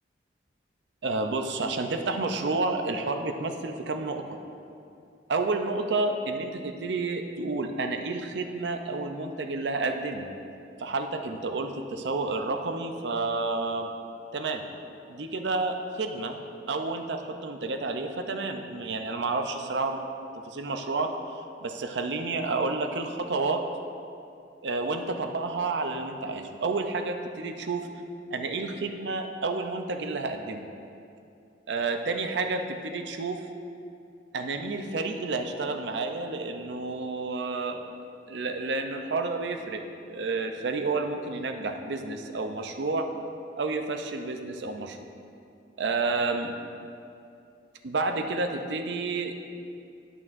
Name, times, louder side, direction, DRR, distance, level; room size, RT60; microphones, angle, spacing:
voice 1, 1.0-4.2 5.3-10.3 10.8-13.9 14.3-14.6 15.1-16.4 16.7-20.0 20.4-23.6 24.6-27.9 28.3-30.7 31.7-33.4 34.3-38.0 38.3-43.1 43.6-45.0 45.8-46.5 47.8-49.4, right 3 dB, 70° right, 5 dB, 0.6 m, -30 dB
11.0 x 6.1 x 2.6 m, 2.5 s
head